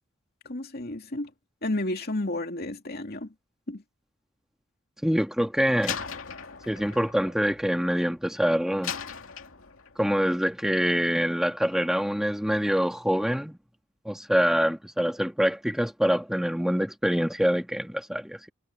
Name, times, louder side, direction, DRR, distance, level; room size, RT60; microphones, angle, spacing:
voice 1, 0.4-1.3 1.6-3.3 3.7-3.8, left 1 dB, 50° left, 2.7 m, -31 dB
voice 2, 5.0-6.0 6.7-8.9 10.0-13.6 14.0-18.5, equal, ahead, 1.5 m, -25 dB
Slam, 5.8-8.3 8.8-10.1, left 7 dB, 75° left, 2.5 m, -38 dB
head